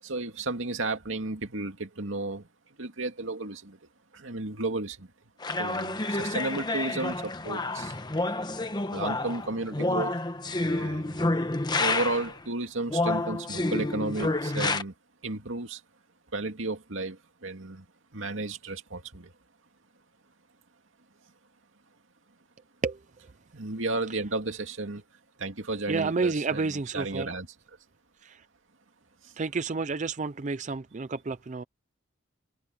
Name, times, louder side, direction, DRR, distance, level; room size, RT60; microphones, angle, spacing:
voice 1, 0.0-2.5 2.8-3.8 4.1-5.1 5.5-8.0 8.9-10.2 10.6-11.2 11.8-14.9 15.2-15.8 16.3-17.9 18.1-19.3 23.5-25.0 25.4-27.5 29.2-29.3, right 2 dB, 75° right, 2.4 m, -33 dB
sound 1, 5.4-12.4 12.9-14.8, left 2 dB, 20° left, 1.1 m, -29 dB
voice 2, 25.9-27.3 28.2-28.4 29.4-31.6, right 4 dB, 35° right, 0.5 m, -30 dB
head